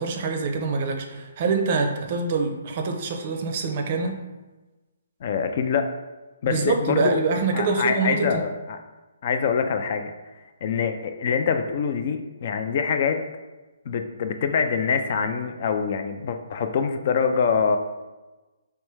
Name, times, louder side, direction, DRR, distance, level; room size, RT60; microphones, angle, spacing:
voice 1, 0.0-4.2 6.5-8.4, right 4 dB, 40° right, 4 dB, 0.5 m, -25 dB
voice 2, 5.2-5.9 6.4-7.2 7.5-8.8 9.2-10.1 10.6-13.2 13.9-17.8, left 6 dB, 45° left, 7 dB, 0.3 m, -24 dB
3.3 x 3.1 x 3.2 m, 1.2 s
hypercardioid pair, 155°, 0 cm